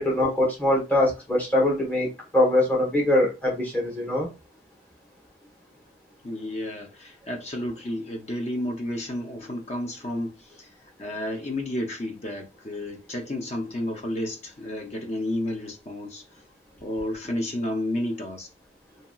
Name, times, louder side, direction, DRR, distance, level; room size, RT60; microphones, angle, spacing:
voice 1, 0.0-2.1 2.3-4.3, left 1 dB, 10° left, 1.0 m, -22 dB
voice 2, 6.2-16.3 16.8-18.5, left 1 dB, 35° left, 0.6 m, -31 dB
2.8 x 2.8 x 2.3 m
head